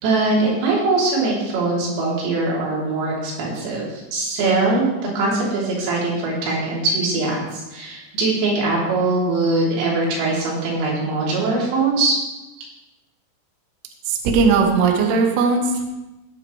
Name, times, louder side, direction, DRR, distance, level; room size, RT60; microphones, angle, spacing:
voice 1, 0.0-4.9 5.2-12.2, right 3 dB, 90° right, -5 dB, 5.9 m, -21 dB
voice 2, 14.1-15.9, right 5 dB, 70° right, 2 dB, 2.7 m, -18 dB
17.5 x 8.4 x 3.2 m, 1.0 s
omnidirectional pair, 5.9 m